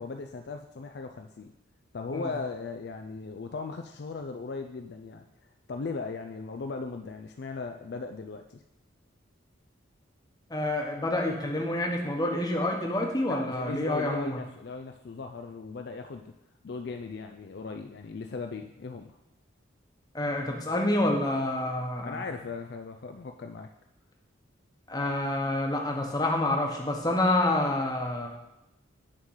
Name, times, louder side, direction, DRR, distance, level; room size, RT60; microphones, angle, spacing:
voice 1, 0.0-1.5 1.9-5.3 5.7-8.6 13.3-16.3 16.6-19.2 22.0-23.7, left 4 dB, 55° left, 5 dB, 0.4 m, -38 dB
voice 2, 10.5-14.4 20.1-22.2 24.9-28.3, left 1 dB, 20° left, 1 dB, 1.0 m, -28 dB
8.9 x 3.8 x 5.6 m, 0.93 s
head